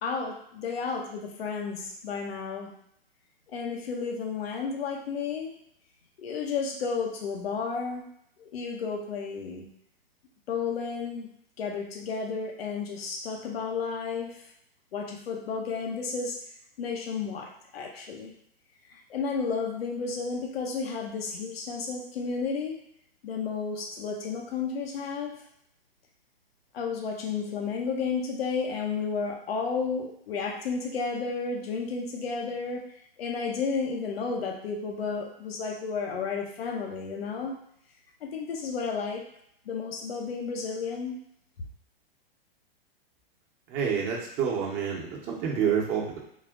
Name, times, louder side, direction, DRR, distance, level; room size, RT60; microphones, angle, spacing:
voice 1, 0.0-2.7 3.5-5.6 6.2-8.0 8.4-9.7 10.5-11.3 11.6-14.4 14.9-16.4 16.8-18.3 18.9-22.8 23.2-25.4 26.7-32.8 33.2-37.5 38.2-39.2 39.7-41.2, left 5 dB, 80° left, 1 dB, 1.0 m, -32 dB
voice 2, 43.7-46.2, right 7 dB, 30° right, -2 dB, 1.1 m, -28 dB
4.2 x 2.4 x 3.7 m, 0.73 s
hypercardioid pair, 135°, 30 cm